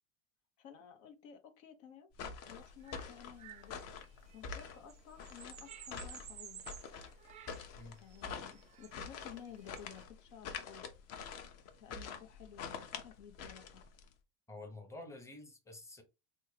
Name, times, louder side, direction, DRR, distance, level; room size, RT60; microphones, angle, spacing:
voice 1, 0.6-2.1 2.5-3.8 4.3-6.6 8.0-10.9 11.8-13.8, left 8 dB, 80° left, 0.8 m, -54 dB
sound 1, 2.1-14.1, left 6 dB, 45° left, 0.7 m, -46 dB
sound 2, 2.7-10.0, right 9 dB, 20° right, 0.3 m, -54 dB
voice 2, 14.5-16.0, left 2 dB, 10° left, 0.7 m, -49 dB
3.5 x 2.3 x 3.2 m
supercardioid pair, 130°, 37 cm